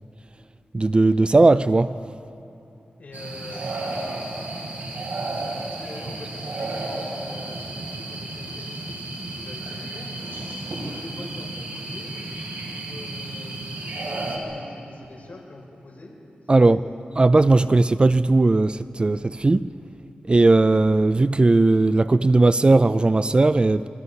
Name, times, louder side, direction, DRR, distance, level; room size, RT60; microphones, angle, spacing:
voice 1, 0.7-1.9 16.5-16.8 17.2-19.7 20.3-23.9, right 2 dB, 30° right, 0.4 m, -17 dB
voice 2, 3.0-4.6 5.5-10.1 10.8-12.1 12.7-16.1 16.6-17.0, left 2 dB, 50° left, 6.2 m, -43 dB
sound 1, 3.1-14.4, right 2 dB, 75° right, 5.1 m, -33 dB
28.0 x 25.5 x 5.5 m
wide cardioid pair, 90°, 3 cm